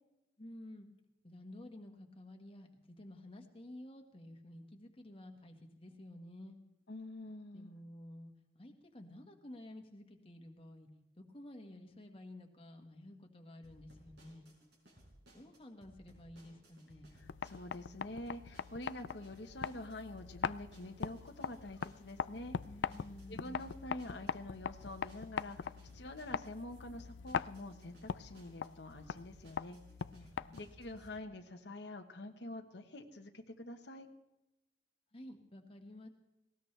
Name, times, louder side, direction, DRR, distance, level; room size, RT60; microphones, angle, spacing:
voice 1, 0.4-0.9 1.2-6.6 7.5-10.9 11.2-14.5 15.3-17.1 22.7-23.7 30.1-30.7 35.1-36.1, left 1 dB, 30° left, 3 dB, 1.6 m, -52 dB
voice 2, 6.9-7.7 17.4-22.6 23.3-29.8 30.5-34.1, left 1 dB, 70° left, 4 dB, 1.2 m, -47 dB
sound 1, 13.6-31.1, equal, 65° right, 5.6 m, -62 dB
sound 2, 17.1-30.9, left 7 dB, 90° left, 0.4 m, -42 dB
19.5 x 18.0 x 3.4 m, 0.94 s
head